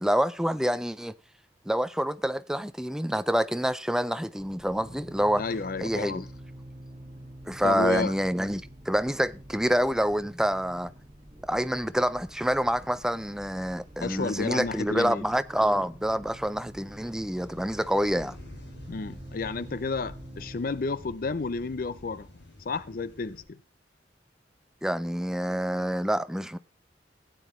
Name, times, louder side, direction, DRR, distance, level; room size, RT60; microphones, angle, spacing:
voice 1, 0.0-1.1 1.7-5.4 5.8-6.2 7.5-10.9 11.5-18.4 24.8-26.6, equal, 5° right, 0.4 m, -27 dB
sound 1, 4.4-20.6, right 1 dB, 30° right, 5.2 m, -47 dB
voice 2, 5.4-6.3 7.6-8.1 14.0-15.2 18.9-22.3 22.7-23.6, left 4 dB, 50° left, 0.5 m, -31 dB
sound 2, 12.2-23.4, left 1 dB, 70° left, 5.3 m, -51 dB
16.0 x 9.3 x 3.1 m
head